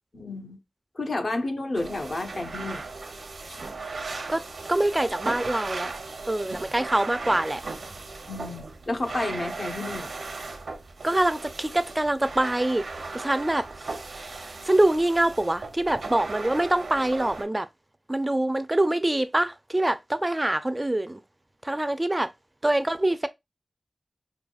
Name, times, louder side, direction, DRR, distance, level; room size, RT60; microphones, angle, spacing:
voice 1, 0.1-0.6 0.9-2.9 3.5-3.6 8.3-10.1, left 2 dB, 60° left, 0.8 m, -31 dB
sound 1, 1.7-17.4, right 3 dB, 85° right, 0.6 m, -37 dB
voice 2, 4.7-5.9 6.3-7.6 11.0-12.8 13.1-17.7 18.1-21.2 21.6-22.3 22.6-23.3, right 1 dB, 20° right, 0.3 m, -25 dB
4.8 x 2.2 x 2.3 m
wide cardioid pair, 75°, 0 cm